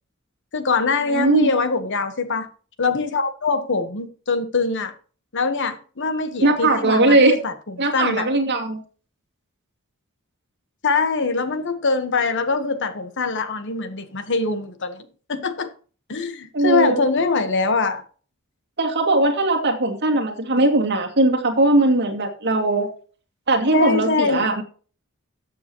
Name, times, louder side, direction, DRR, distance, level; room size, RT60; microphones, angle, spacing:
voice 1, 0.5-2.5 2.8-4.9 5.3-7.5 7.9-8.3 10.8-15.7 16.1-18.0 23.7-24.5, left 4 dB, 60° left, 1.3 m, -23 dB
voice 2, 1.1-1.5 6.4-7.3 7.8-8.8 16.5-17.0 18.8-22.9 23.5-24.6, right 2 dB, 55° right, 2.4 m, -19 dB
13.5 x 7.9 x 3.0 m
head